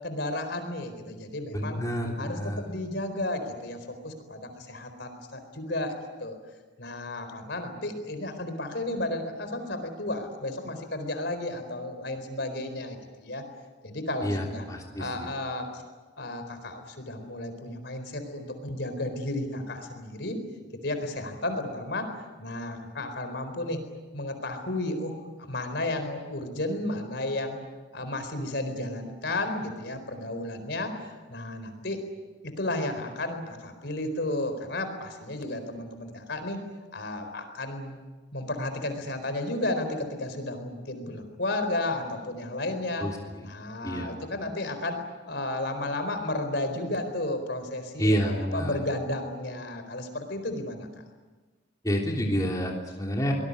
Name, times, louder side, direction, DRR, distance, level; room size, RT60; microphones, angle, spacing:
voice 1, 0.0-1.8 2.2-6.3 6.8-13.4 13.8-14.6 15.0-15.8 16.2-20.4 20.8-23.8 24.1-27.6 27.9-32.0 32.4-36.6 36.9-38.0 38.3-43.1 43.4-45.0 45.3-50.9, left 1 dB, 60° left, 8 dB, 4.2 m, -33 dB
voice 2, 1.5-2.7 14.2-15.3 43.0-43.2 43.8-44.1 48.0-48.8 51.8-53.3, equal, 20° left, -1 dB, 3.3 m, -28 dB
24.5 x 20.5 x 9.7 m, 1.3 s
head